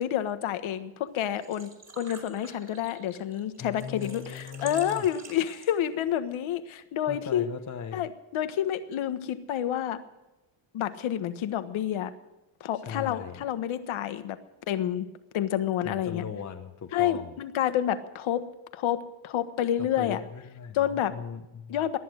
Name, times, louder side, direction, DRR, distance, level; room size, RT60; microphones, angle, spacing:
voice 1, 0.0-1.7 2.0-7.4 7.9-10.0 10.7-12.1 12.6-14.4 14.7-15.1 15.3-16.2 16.9-18.4 18.7-19.0 19.2-20.2 20.7-21.1 21.7-22.0, left 10 dB, 70° left, 10 dB, 1.5 m, -29 dB
Engine / Trickle dribble / Fill (with liquid), 1.1-6.0, right 3 dB, 30° right, 3.4 m, -47 dB
voice 2, 3.6-5.1 7.1-8.1 12.7-13.4 15.8-17.4 19.8-21.7, left 7 dB, 35° left, 4 dB, 1.2 m, -39 dB
19.0 x 11.5 x 6.4 m, 1.0 s
cardioid pair, 125°, 50 cm